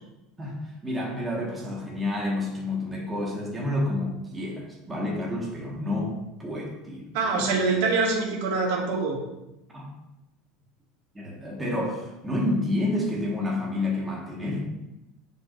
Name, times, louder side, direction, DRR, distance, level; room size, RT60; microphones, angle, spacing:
voice 1, 0.4-6.1 6.4-7.6 9.7-9.9 11.1-14.7, left 1 dB, 10° right, -3 dB, 1.5 m, -29 dB
voice 2, 7.1-9.2, right 4 dB, 75° right, -3 dB, 1.9 m, -24 dB
9.2 x 4.8 x 2.6 m, 0.93 s
supercardioid pair, 155°, 0 cm